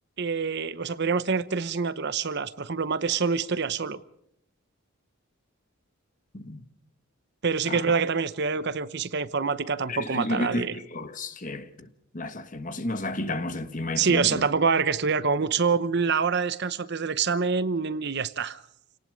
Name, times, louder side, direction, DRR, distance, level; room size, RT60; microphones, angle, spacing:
voice 1, 0.2-4.0 7.4-10.8 14.0-18.6, right 5 dB, 50° right, 0.8 m, -26 dB
voice 2, 9.9-11.6 12.1-14.4, left 1 dB, 35° left, 1.5 m, -31 dB
28.5 x 18.5 x 5.2 m
head